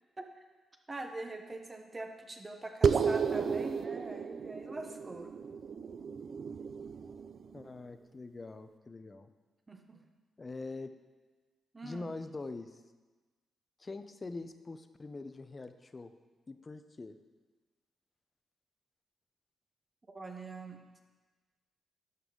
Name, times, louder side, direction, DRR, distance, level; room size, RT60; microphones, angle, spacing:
voice 1, 0.9-5.3 9.7-10.0 11.7-12.1 20.1-20.8, right 2 dB, 25° right, 4 dB, 0.9 m, -43 dB
sound 1, 2.8-7.6, right 6 dB, 55° right, 0.4 m, -33 dB
voice 2, 7.5-9.3 10.4-10.9 11.8-12.8 13.8-16.1 16.5-17.2, left 3 dB, 30° left, 9 dB, 0.6 m, -43 dB
12.0 x 5.4 x 3.8 m, 1.3 s
cardioid pair, 80°, 0 cm